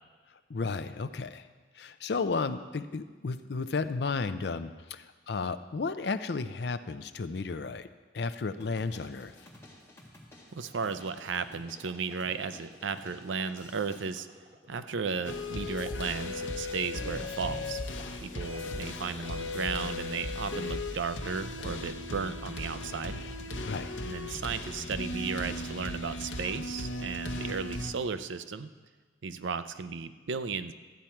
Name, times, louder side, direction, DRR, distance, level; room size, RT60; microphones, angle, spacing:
voice 1, 0.5-1.4 1.8-7.9 8.1-9.3 23.7-23.9, left 4 dB, 60° left, 11 dB, 0.5 m, -33 dB
sound 1, 8.6-14.1, left 1 dB, 15° left, 1.7 m, -53 dB
voice 2, 10.5-14.3 14.7-17.8 18.2-23.2 24.0-28.7 29.2-30.7, right 5 dB, 85° right, 11 dB, 0.5 m, -35 dB
sound 2, 10.6-20.0, right 1 dB, 40° right, 1.1 m, -56 dB
sound 3, 15.2-27.9, left 2 dB, 85° left, 0.9 m, -37 dB
13.5 x 8.5 x 4.5 m, 1.4 s
head